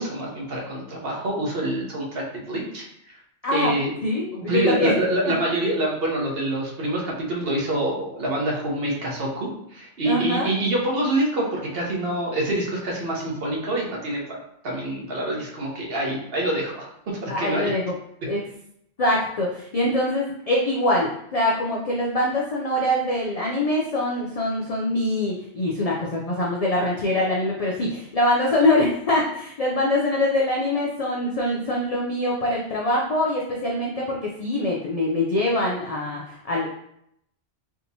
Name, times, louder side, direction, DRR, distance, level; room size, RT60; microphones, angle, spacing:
voice 1, 0.0-3.2 3.5-3.9 4.3-14.4 14.6-17.7, right 1 dB, 60° right, -2 dB, 1.0 m, -26 dB
voice 2, 3.4-3.7 4.0-4.9 5.3-5.4 10.0-10.5 17.3-17.9 18.2-18.4 19.0-36.7, left 1 dB, 60° left, -3 dB, 0.4 m, -24 dB
3.4 x 2.8 x 2.6 m, 0.74 s
omnidirectional pair, 1.2 m